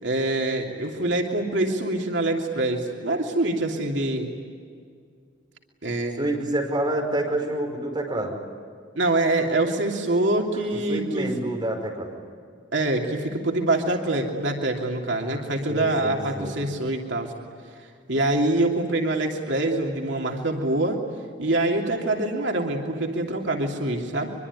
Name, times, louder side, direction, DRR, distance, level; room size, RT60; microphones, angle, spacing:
voice 1, 0.0-4.3 5.8-6.2 9.0-11.3 12.7-17.3 18.1-21.0 21.4-24.3, right 2 dB, 75° right, 2 dB, 3.0 m, -25 dB
voice 2, 6.2-8.4 10.7-12.1 15.3-15.4 15.7-16.6, right 1 dB, 25° right, 1 dB, 5.6 m, -28 dB
24.5 x 23.5 x 9.7 m, 2.2 s
head